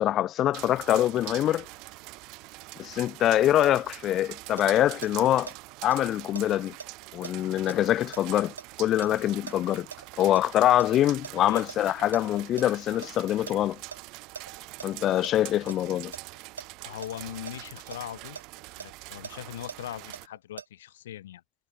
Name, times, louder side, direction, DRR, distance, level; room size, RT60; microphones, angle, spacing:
voice 1, 0.0-1.7 2.8-5.5 5.8-6.8 7.1-9.9 10.2-13.8 14.8-16.1, left 12 dB, 30° left, 0.4 m, -24 dB
sound 1, 0.5-20.3, right 24 dB, 40° right, 2.3 m, -44 dB
sound 2, 4.4-5.5 5.9-10.5 10.8-12.7 13.0-13.1 13.5-14.9 15.2-15.8 16.1-18.0 18.4-20.7, right 6 dB, 70° right, 0.5 m, -42 dB
voice 2, 16.8-18.4 18.8-21.4, left 12 dB, 60° left, 1.4 m, -40 dB
figure-of-eight pair, 90°, 0 cm